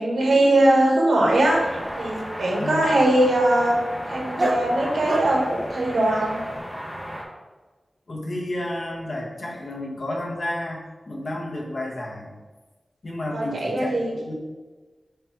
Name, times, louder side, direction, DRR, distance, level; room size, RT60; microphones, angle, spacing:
voice 1, 0.0-1.6 2.0-3.8 4.1-6.4 13.3-14.1, right 1 dB, 85° right, -2 dB, 1.5 m, -20 dB
Dog, 1.3-6.6, right 1 dB, 35° right, 0.6 m, -33 dB
sound 1, 1.4-7.2, equal, 10° left, 1.6 m, -35 dB
voice 2, 2.6-3.0 8.1-12.3 13.0-14.3, left 1 dB, 60° left, -2 dB, 1.3 m, -31 dB
8.1 x 3.3 x 4.7 m, 1.3 s
wide cardioid pair, 85°, 0 cm